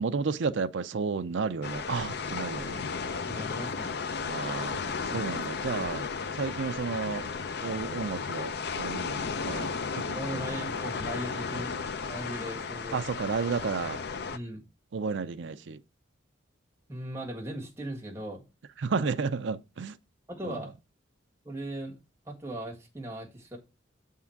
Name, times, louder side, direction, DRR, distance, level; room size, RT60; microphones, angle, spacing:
voice 1, 0.0-2.8 4.2-6.1 6.3-7.3 7.6-10.5 12.9-14.0 14.9-15.8 18.8-20.0 20.4-20.6, right 5 dB, 70° right, 0.5 m, -32 dB
sound 1, 1.6-14.4, left 5 dB, 55° left, 0.5 m, -34 dB
voice 2, 3.2-4.0 10.1-11.7 12.1-13.0 14.3-14.6 16.9-18.4 20.3-20.7 21.4-22.0 22.3-23.6, right 1 dB, 15° right, 1.8 m, -38 dB
7.2 x 3.7 x 5.8 m
head